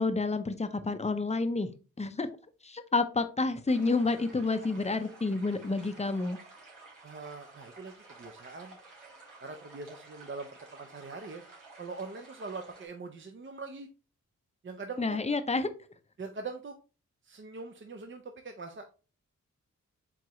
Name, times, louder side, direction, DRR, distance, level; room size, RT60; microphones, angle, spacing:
voice 1, 0.0-1.7 2.0-2.3 2.6-6.4 15.0-15.7, left 3 dB, 20° left, 0.6 m, -29 dB
sound 1, 3.7-12.9, right 3 dB, 90° right, 1.8 m, -52 dB
voice 2, 7.0-8.8 9.4-11.4 11.8-13.9 14.6-15.2 16.2-16.7 17.2-18.9, right 4 dB, 40° right, 0.6 m, -42 dB
4.7 x 3.6 x 3.0 m
cardioid pair, 50°, 32 cm